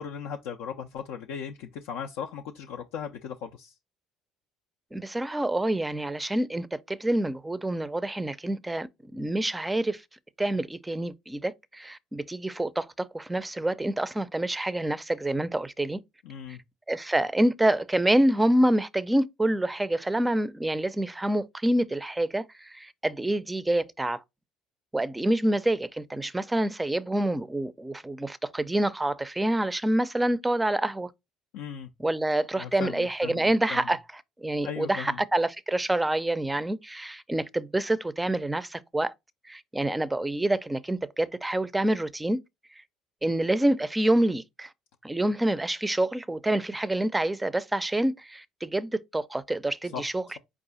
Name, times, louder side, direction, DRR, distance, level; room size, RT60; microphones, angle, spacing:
voice 1, 0.0-3.8 16.2-16.6 31.5-31.9 32.5-33.9 34.6-35.2 49.9-50.1, left 7 dB, 70° left, 0.4 m, -37 dB
voice 2, 4.9-10.0 10.4-16.0 16.9-24.2 24.9-31.1 32.0-34.0 34.4-39.1 39.5-42.4 43.2-44.7 45.0-50.2, right 1 dB, 10° right, 0.4 m, -27 dB
4.7 x 2.4 x 3.9 m
hypercardioid pair, 60°, 0 cm